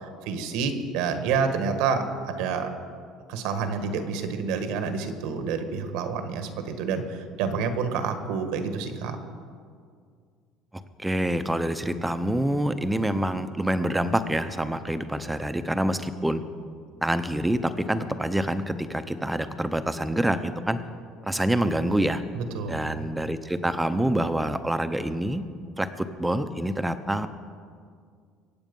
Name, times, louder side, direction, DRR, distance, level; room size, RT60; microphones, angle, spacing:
voice 1, 0.2-2.7 3.3-9.2 22.3-23.1, right 5 dB, 80° right, 8 dB, 1.5 m, -28 dB
voice 2, 10.7-16.4 17.0-20.8 21.2-22.2 22.7-25.5 25.8-27.3, right 1 dB, 5° right, 10 dB, 0.6 m, -26 dB
23.0 x 8.6 x 5.4 m, 2.1 s
cardioid pair, 150°, 0 cm